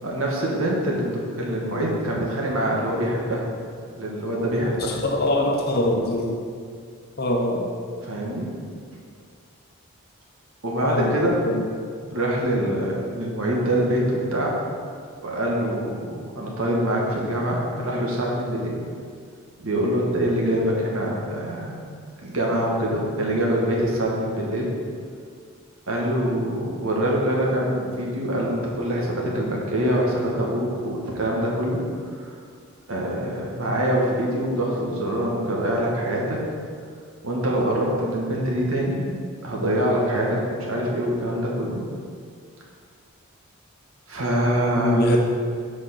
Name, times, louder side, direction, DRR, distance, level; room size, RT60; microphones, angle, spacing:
voice 1, 0.0-3.4 4.0-4.9 8.0-8.5 10.6-11.4 12.1-14.5 15.2-18.8 19.6-21.8 22.2-24.7 25.9-31.8 32.2-32.4 32.9-36.4 37.2-39.0 39.4-41.8 44.1-45.0, right 1 dB, 70° right, -3 dB, 1.6 m, -24 dB
voice 2, 4.8-6.4 7.2-7.6 10.8-11.7 44.8-45.2, left 1 dB, 45° left, 1 dB, 0.9 m, -23 dB
6.5 x 5.1 x 6.4 m, 2.1 s
head